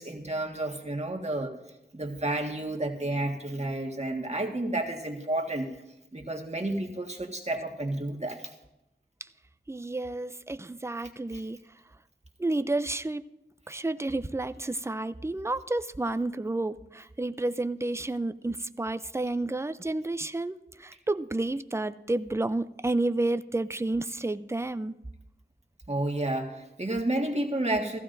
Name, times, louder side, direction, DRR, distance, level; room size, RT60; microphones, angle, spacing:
voice 1, 0.0-1.5 1.9-5.7 6.1-8.5 11.3-11.4 25.9-28.0, right 1 dB, 35° right, 1 dB, 1.7 m, -31 dB
voice 2, 9.7-11.6 12.4-13.2 13.7-24.9, right 2 dB, 15° right, 12 dB, 0.4 m, -30 dB
15.5 x 14.5 x 2.6 m, 0.91 s
wide cardioid pair, 40°, 20 cm